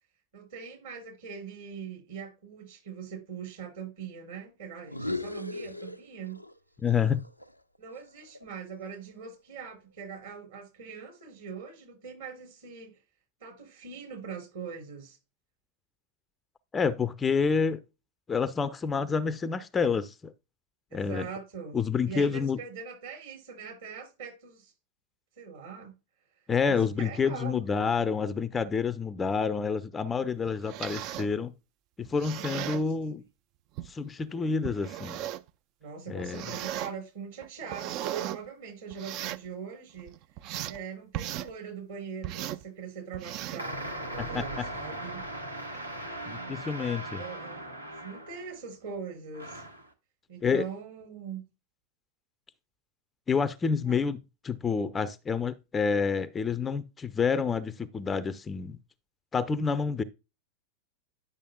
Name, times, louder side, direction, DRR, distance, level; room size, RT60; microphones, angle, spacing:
voice 1, 0.3-6.4 7.8-13.0 13.4-15.2 20.9-21.8 22.0-24.7 25.4-25.9 26.7-27.7 32.6-32.8 35.8-40.1 40.7-45.2 47.1-47.6 48.0-49.6 50.3-51.4 53.8-54.0, right 6 dB, 60° right, 5.1 m, -42 dB
sound 1, 4.8-6.6 6.9-9.1, left 2 dB, 90° left, 0.5 m, -39 dB
voice 2, 6.8-7.2 16.7-17.8 18.3-20.3 20.9-21.3 21.7-22.6 26.5-31.5 32.0-33.2 33.9-35.2 36.1-36.4 44.2-44.7 46.1-47.2 50.4-50.6 53.3-58.8 59.3-60.0, left 5 dB, 15° left, 0.5 m, -28 dB
sound 2, 30.5-31.3 32.0-32.8 33.8-33.9 34.6-35.5 36.2-36.9 37.4-38.4 38.9-39.5 40.0-40.8 41.1-41.5 42.2-42.6 43.1-43.7 44.2-44.4, right 12 dB, 40° right, 0.4 m, -36 dB
sound 3, 43.6-48.6 49.3-49.9, right 1 dB, 85° right, 1.3 m, -39 dB
10.0 x 6.7 x 2.2 m
figure-of-eight pair, 90°, 0 cm